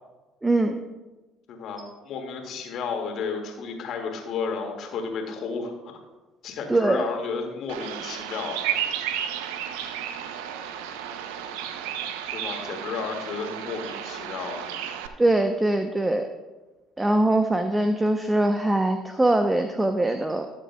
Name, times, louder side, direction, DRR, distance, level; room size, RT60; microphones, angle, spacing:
voice 1, 0.4-0.8 6.7-7.0 15.2-16.3 17.0-20.5, right 1 dB, 15° right, 7 dB, 0.7 m, -22 dB
voice 2, 1.5-6.0 6.4-8.6 12.3-14.7, left 5 dB, 55° left, 3 dB, 2.1 m, -32 dB
Bird vocalization bird call bird song, 7.7-15.1, right 9 dB, 70° right, 0.6 m, -33 dB
20.0 x 7.4 x 2.3 m, 1.1 s
hypercardioid pair, 55°, 0 cm